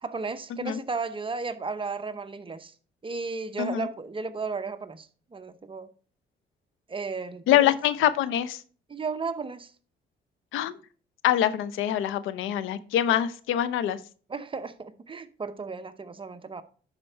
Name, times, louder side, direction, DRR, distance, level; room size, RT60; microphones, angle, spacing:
voice 1, 0.0-2.7 3.0-5.1 5.3-5.9 6.9-7.7 8.9-9.7 14.3-16.6, right 4 dB, 25° right, 0.8 m, -34 dB
voice 2, 3.6-3.9 7.5-8.6 10.5-10.8 11.2-14.0, left 11 dB, 90° left, 0.6 m, -24 dB
10.5 x 4.4 x 4.4 m
cardioid pair, 90°, 20 cm